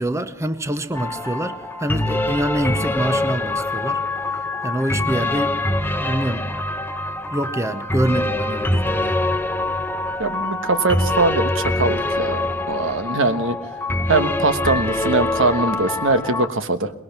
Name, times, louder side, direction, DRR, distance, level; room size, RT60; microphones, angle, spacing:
voice 1, 0.0-4.0 4.6-5.7 6.0-6.4 7.3-9.2, right 1 dB, 15° right, 0.8 m, -25 dB
sound 1, 0.9-16.5, left 2 dB, 10° left, 0.9 m, -24 dB
voice 2, 10.2-13.6 14.1-16.9, right 3 dB, 65° right, 1.3 m, -21 dB
23.5 x 20.5 x 6.0 m
head